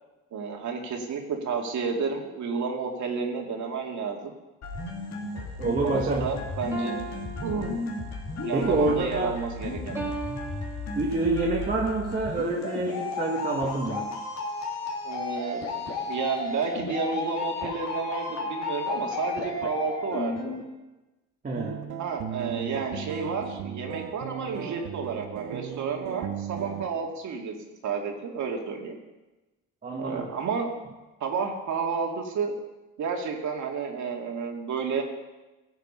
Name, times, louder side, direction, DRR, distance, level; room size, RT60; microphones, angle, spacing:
voice 1, 0.3-4.3 5.3-5.5 5.8-7.0 7.4-7.9 8.4-10.0 15.0-15.7 16.1-20.6 22.0-27.5 27.8-29.0 30.0-30.8 31.2-32.5 33.0-35.0, right 5 dB, 55° right, 2 dB, 2.1 m, -31 dB
sound 1, 4.6-20.6, left 3 dB, 50° left, 2.9 m, -33 dB
voice 2, 5.6-6.3 8.5-9.4 10.9-14.1 21.4-21.8 29.8-30.3, right 2 dB, 25° right, -1 dB, 1.6 m, -27 dB
sound 2, 6.7-8.3 10.0-11.4, right 3 dB, 5° right, 2.1 m, -38 dB
sound 3, 21.6-26.9, right 10 dB, 75° right, 1.0 m, -36 dB
15.0 x 8.0 x 5.5 m, 1.1 s
cardioid pair, 95°, 34 cm